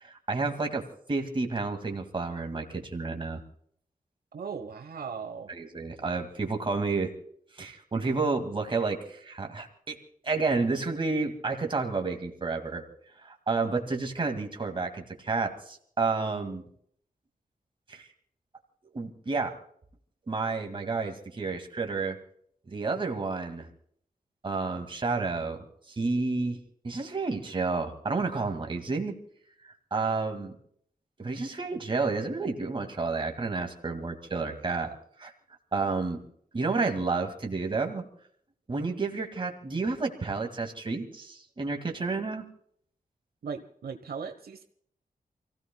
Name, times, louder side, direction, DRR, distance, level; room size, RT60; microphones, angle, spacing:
voice 1, 0.0-3.4 5.5-7.1 7.6-10.0 10.2-12.8 13.2-16.6 17.9-18.1 18.9-19.5 20.3-22.2 22.7-23.7 24.4-26.6 26.8-29.2 29.9-30.5 31.2-35.3 35.7-36.2 36.5-38.0 38.7-42.4, right 3 dB, 35° right, 4 dB, 2.2 m, -30 dB
voice 2, 4.3-5.5 43.4-44.6, right 6 dB, 85° right, 7 dB, 1.1 m, -38 dB
29.0 x 16.5 x 2.3 m, 0.63 s
wide cardioid pair, 175°, 15 cm